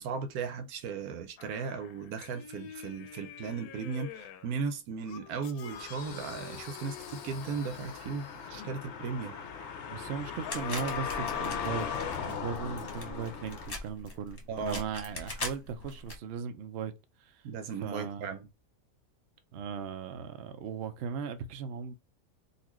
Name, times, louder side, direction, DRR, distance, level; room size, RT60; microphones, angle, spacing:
voice 1, 0.0-9.4 14.5-14.8 17.4-18.5, right 5 dB, 85° right, 1.2 m, -36 dB
sound 1, 1.4-4.5 5.1-8.7 10.4-12.8 13.3-13.4, left 9 dB, 85° left, 1.1 m, -43 dB
sound 2, 5.7-13.7, left 6 dB, 60° left, 0.8 m, -40 dB
voice 2, 9.9-11.9 12.3-16.9 17.2-17.5 17.7-18.4 19.5-21.9, right 6 dB, 60° right, 0.7 m, -38 dB
sound 3, 10.5-16.2, left 2 dB, 30° left, 1.0 m, -41 dB
4.0 x 2.5 x 3.0 m
omnidirectional pair, 1.5 m